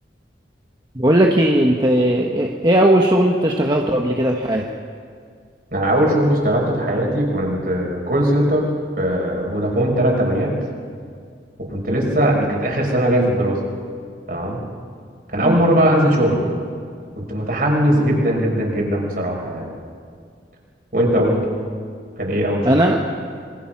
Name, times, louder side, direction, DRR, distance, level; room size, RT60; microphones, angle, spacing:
voice 1, 0.9-4.6 15.4-15.6 22.6-23.0, right 1 dB, 25° right, 0 dB, 1.3 m, -17 dB
voice 2, 5.7-8.7 9.0-10.5 11.7-13.6 14.3-14.6 15.3-16.5 17.2-19.7 20.9-21.5 22.2-22.8, right 1 dB, 55° right, -1 dB, 6.5 m, -19 dB
27.0 x 24.0 x 6.1 m, 2.1 s
head